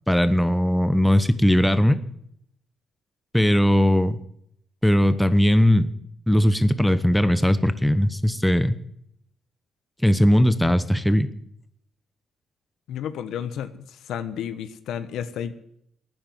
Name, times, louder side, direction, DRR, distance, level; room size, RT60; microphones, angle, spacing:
voice 1, 0.1-2.0 3.3-4.2 4.8-5.9 6.3-8.8 10.0-11.3, equal, 5° left, 12 dB, 1.0 m, -19 dB
voice 2, 12.9-15.5, left 9 dB, 80° left, 11 dB, 1.2 m, -32 dB
12.5 x 9.6 x 9.4 m, 0.72 s
cardioid pair, 90°, 0 cm